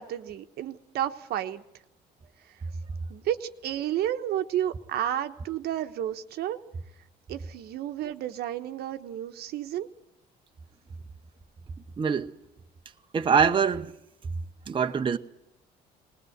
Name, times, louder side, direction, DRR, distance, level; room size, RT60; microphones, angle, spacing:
voice 1, 0.0-1.6 2.5-2.6 3.1-6.6 7.3-9.9, right 11 dB, 70° right, 1.2 m, -31 dB
voice 2, 12.0-12.3 13.1-13.9 14.7-15.2, right 6 dB, 30° right, 0.9 m, -24 dB
20.0 x 18.5 x 8.0 m
cardioid pair, 110°, 17 cm